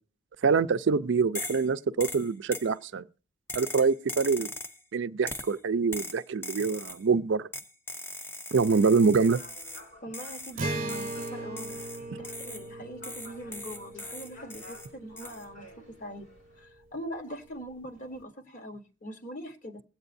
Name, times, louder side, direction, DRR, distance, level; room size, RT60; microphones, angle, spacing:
voice 1, 0.4-3.0 3.5-4.5 4.9-7.5 8.5-9.4, right 5 dB, 60° right, 0.4 m, -25 dB
sound 1, 1.3-1.7 2.0-2.7 3.5-4.8 5.3-5.6 5.9-7.0 7.5-9.9 10.1-10.6 10.9-12.7 13.0-14.9 15.2-15.4, left 2 dB, 10° left, 0.6 m, -40 dB
sound 2, 9.1-16.7, left 1 dB, 80° left, 4.9 m, -53 dB
voice 2, 10.0-16.3 16.6-19.8, equal, 40° left, 1.2 m, -42 dB
Acoustic guitar, 10.6-16.0, right 2 dB, 45° right, 0.9 m, -38 dB
21.0 x 8.1 x 2.6 m
head